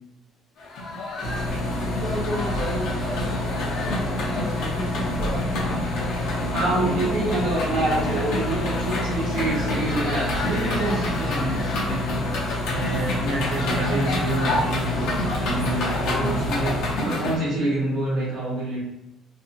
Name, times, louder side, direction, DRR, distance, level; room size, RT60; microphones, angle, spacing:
sound 1, 0.6-17.4, left 2 dB, 70° left, 0.7 m, -30 dB
sound 2, 1.2-16.9, left 1 dB, 45° left, 0.8 m, -28 dB
voice 1, 1.8-5.8 6.4-7.4, equal, 15° right, -5 dB, 0.6 m, -34 dB
voice 2, 6.5-12.1 12.6-18.8, right 2 dB, 80° right, -6 dB, 1.3 m, -27 dB
2.6 x 2.5 x 2.7 m, 0.88 s
cardioid pair, 160°, 0 cm